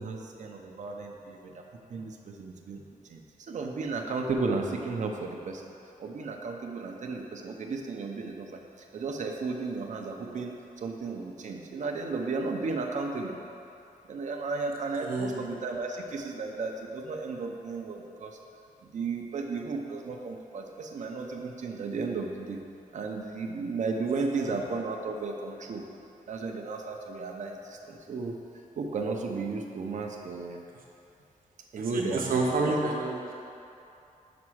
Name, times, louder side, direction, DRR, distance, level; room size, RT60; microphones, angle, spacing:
voice 1, 0.0-2.8 3.1-5.6 6.0-8.6 8.9-13.4 14.1-18.4 18.8-22.6 22.9-25.8 26.3-28.4 28.8-30.6 31.7-32.7, right 4 dB, 55° right, 2 dB, 0.7 m, -34 dB
voice 2, 15.0-15.5 24.1-24.5 31.8-33.2, right 3 dB, 80° right, -1 dB, 1.0 m, -29 dB
6.0 x 4.3 x 6.2 m, 2.7 s
wide cardioid pair, 135°, 15 cm